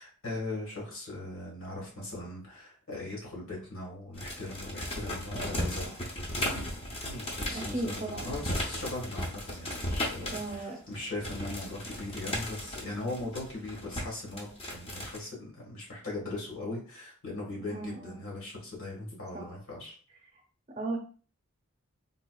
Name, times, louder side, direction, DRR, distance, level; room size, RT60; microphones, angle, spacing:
voice 1, 0.0-6.1 6.4-6.7 7.0-20.0, left 2 dB, 70° left, -2 dB, 1.5 m, -39 dB
sound 1, 4.1-10.6 10.9-15.2, left 1 dB, 25° left, 0.6 m, -36 dB
voice 2, 5.4-5.9 7.5-8.3 10.3-10.8 17.7-18.2 19.3-19.5 20.8-21.0, right 2 dB, 30° right, 0 dB, 0.7 m, -36 dB
3.8 x 2.4 x 2.3 m, 0.41 s
head